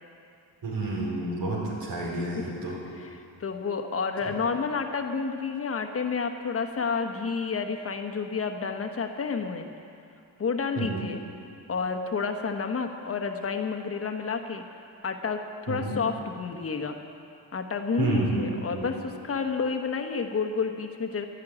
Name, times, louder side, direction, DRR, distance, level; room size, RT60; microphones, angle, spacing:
voice 1, 0.6-2.8 10.8-11.0 15.7-16.0 18.0-18.9, right 2 dB, 80° right, -5 dB, 4.8 m, -30 dB
voice 2, 2.1-2.5 2.9-9.7 10.4-11.2 11.7-14.6 15.0-17.0 17.5-21.2, left 5 dB, 35° left, 5 dB, 1.3 m, -30 dB
12.5 x 11.5 x 9.9 m, 2.6 s
cardioid pair, 140°, 42 cm